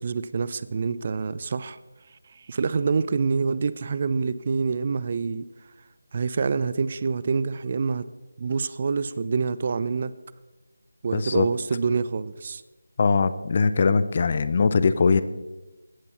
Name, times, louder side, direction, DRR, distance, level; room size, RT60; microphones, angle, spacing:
voice 1, 0.0-1.8 2.3-5.5 6.1-8.1 8.4-10.1 11.0-12.6, right 5 dB, 35° right, 16 dB, 0.3 m, -26 dB
voice 2, 11.1-11.5 13.0-15.2, left 4 dB, 40° left, 14 dB, 0.4 m, -21 dB
16.0 x 6.9 x 3.0 m, 1.1 s
figure-of-eight pair, 165°, 0 cm